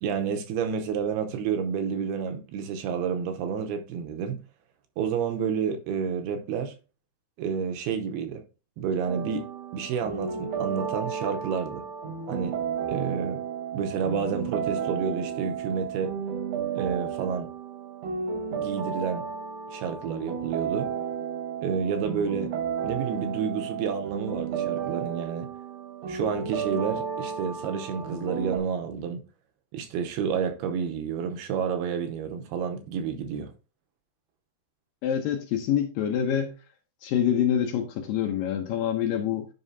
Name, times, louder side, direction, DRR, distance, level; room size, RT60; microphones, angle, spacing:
voice 1, 0.0-4.4 5.0-6.7 7.4-8.4 8.8-9.5 9.7-11.8 12.3-12.5 12.9-13.4 13.7-16.1 16.8-17.5 18.5-19.3 19.7-20.9 21.6-22.5 22.8-25.5 26.1-29.2 29.7-33.5, right 6 dB, 80° right, 2.8 m, -30 dB
sound 1, 9.1-28.6, right 7 dB, 60° right, 1.8 m, -33 dB
voice 2, 35.0-36.5 37.0-39.5, left 9 dB, 75° left, 2.2 m, -26 dB
9.7 x 5.4 x 2.7 m
omnidirectional pair, 4.6 m